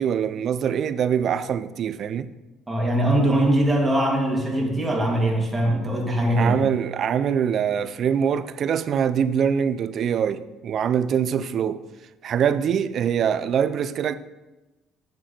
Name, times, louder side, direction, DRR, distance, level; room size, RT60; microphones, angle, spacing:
voice 1, 0.0-2.3 6.4-11.8 12.2-14.1, right 8 dB, 50° right, 0.5 m, -23 dB
voice 2, 2.7-6.6, right 1 dB, 15° right, 2.2 m, -21 dB
7.6 x 7.4 x 4.3 m
cardioid pair, 105°, 0 cm